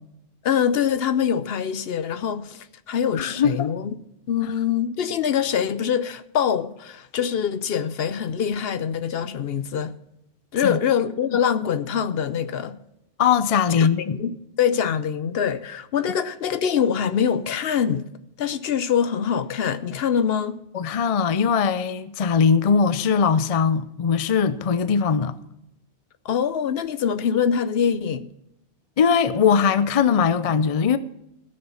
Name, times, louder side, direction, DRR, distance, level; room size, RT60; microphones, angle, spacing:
voice 1, 0.4-3.9 4.3-9.9 10.5-12.8 13.8-18.1 18.4-20.6 26.2-28.3, left 8 dB, 65° left, 0.8 m, -24 dB
voice 2, 3.1-3.7 10.6-10.8 13.2-14.2 20.7-25.3 29.0-31.0, left 6 dB, 45° left, 0.4 m, -20 dB
16.0 x 6.6 x 5.7 m
omnidirectional pair, 1.2 m